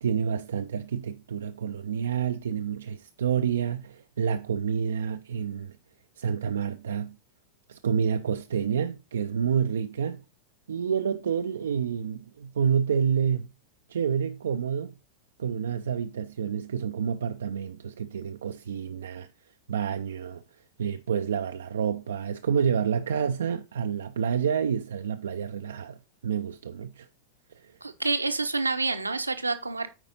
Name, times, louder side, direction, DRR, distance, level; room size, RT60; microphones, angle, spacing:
voice 1, 0.0-5.8 6.2-7.2 7.7-10.2 10.7-13.5 13.9-14.9 15.4-19.3 19.7-20.4 20.8-26.0 26.2-27.1 27.5-27.7, right 7 dB, 65° right, 0.4 m, -28 dB
voice 2, 27.8-29.9, right 3 dB, 80° right, 0.8 m, -28 dB
8.9 x 4.8 x 4.0 m
figure-of-eight pair, 90°, 0 cm